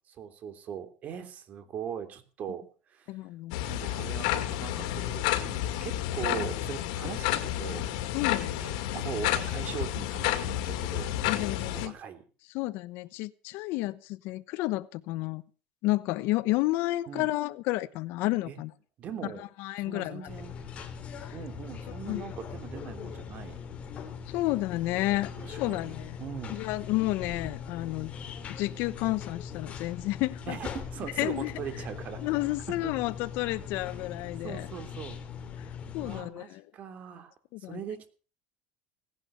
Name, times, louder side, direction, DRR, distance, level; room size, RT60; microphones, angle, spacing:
voice 1, 0.1-2.6 2.9-3.1 3.7-7.8 8.6-11.1 11.6-12.2 17.1-17.3 18.5-18.6 19.0-19.4 19.8-20.6 21.3-23.6 25.4-26.6 30.5-32.2 32.7-32.9 34.4-35.2 36.0-37.3 37.7-38.1, right 8 dB, 40° right, 3.1 m, -40 dB
voice 2, 3.1-3.6 6.4-6.5 8.1-8.5 11.3-11.9 12.5-15.4 15.8-18.7 19.4-20.3 21.2-21.4 22.0-22.2 24.3-26.2 26.5-28.1 28.6-30.6 31.2-31.5 32.2-34.7 35.6-35.7 35.9-36.6 37.5-37.8, left 18 dB, 65° left, 0.9 m, -31 dB
sound 1, 3.5-11.9, left 13 dB, 90° left, 2.3 m, -30 dB
sound 2, 20.3-36.2, left 6 dB, 35° left, 2.8 m, -41 dB
17.5 x 11.0 x 6.7 m
cardioid pair, 140°, 4 cm